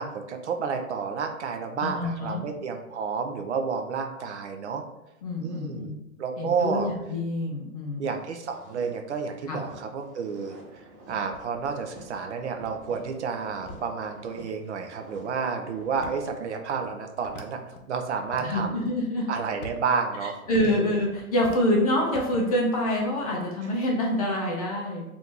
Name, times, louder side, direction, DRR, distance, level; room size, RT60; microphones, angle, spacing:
voice 1, 0.0-4.8 5.4-5.9 6.2-6.9 8.0-17.6 17.9-18.9 19.3-20.4 20.6-20.8, right 5 dB, 55° right, 5 dB, 0.5 m, -30 dB
voice 2, 1.8-2.4 5.2-5.9 6.4-8.0 9.5-9.6 18.4-19.3 20.5-25.0, left 1 dB, 25° left, -2 dB, 0.5 m, -26 dB
sound 1, 8.2-16.8, right 1 dB, 30° right, 1.2 m, -49 dB
sound 2, 11.2-14.3 14.9-15.0 15.7-17.8 18.2-18.9 19.3-21.7 22.0-23.2, left 2 dB, 80° left, 0.8 m, -47 dB
2.8 x 2.6 x 3.6 m, 0.93 s
hypercardioid pair, 140°, 44 cm